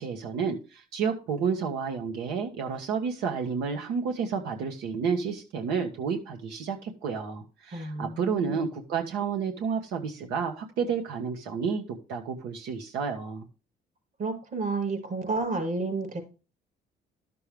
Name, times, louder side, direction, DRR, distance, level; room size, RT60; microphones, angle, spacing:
voice 1, 0.0-13.5, right 6 dB, 85° right, 1.4 m, -30 dB
voice 2, 7.7-8.6 14.2-16.2, right 3 dB, 55° right, 4.9 m, -31 dB
12.0 x 6.8 x 3.4 m
cardioid pair, 110°, 17 cm